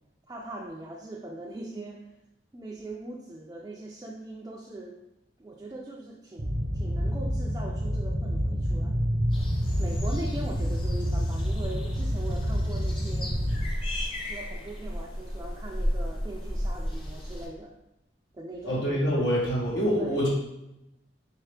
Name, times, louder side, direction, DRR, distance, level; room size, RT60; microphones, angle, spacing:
voice 1, 0.3-2.1 2.5-5.0 5.4-9.0 9.8-13.4 14.2-17.8 18.3-18.8 19.9-20.3, right 1 dB, 20° right, -3 dB, 0.3 m, -40 dB
sound 1, 6.4-13.6, equal, 60° right, 0.6 m, -28 dB
sound 2, 9.3-17.5, equal, 30° left, 0.7 m, -34 dB
voice 2, 18.6-20.3, equal, 85° left, -7 dB, 1.2 m, -25 dB
4.0 x 2.8 x 3.3 m, 0.88 s
head